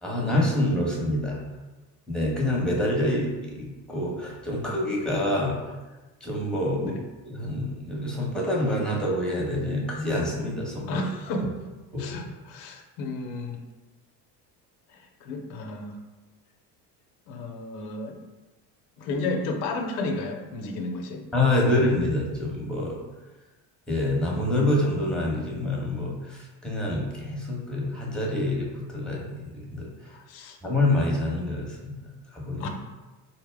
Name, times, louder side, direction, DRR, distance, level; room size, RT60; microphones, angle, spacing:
voice 1, 0.0-1.4 2.1-5.6 6.2-6.9 7.2-11.0 11.9-12.2 21.3-23.0 23.9-29.8 30.6-32.0 32.3-32.7, left 1 dB, ahead, -3 dB, 0.9 m, -26 dB
voice 2, 10.9-11.6 12.0-13.6 14.9-16.0 17.3-18.2 19.0-21.2 30.1-30.6 32.6-32.7, left 2 dB, 75° left, 4 dB, 0.7 m, -32 dB
4.1 x 2.1 x 3.4 m, 1.2 s
supercardioid pair, 80°, 50 cm